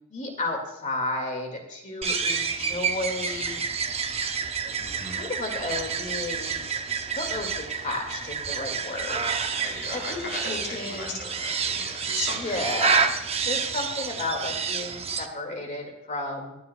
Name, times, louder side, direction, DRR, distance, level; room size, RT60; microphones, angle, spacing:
voice 1, 0.0-3.6 5.1-6.6 7.1-9.2 9.9-11.2 12.3-13.1 13.4-16.6, left 2 dB, 35° left, 2 dB, 2.2 m, -33 dB
sound 1, 2.0-15.3, right 5 dB, 30° right, 0.7 m, -29 dB
voice 2, 4.8-5.2 9.5-12.5, left 2 dB, 55° left, -1 dB, 3.9 m, -36 dB
22.5 x 9.4 x 2.3 m, 0.92 s
head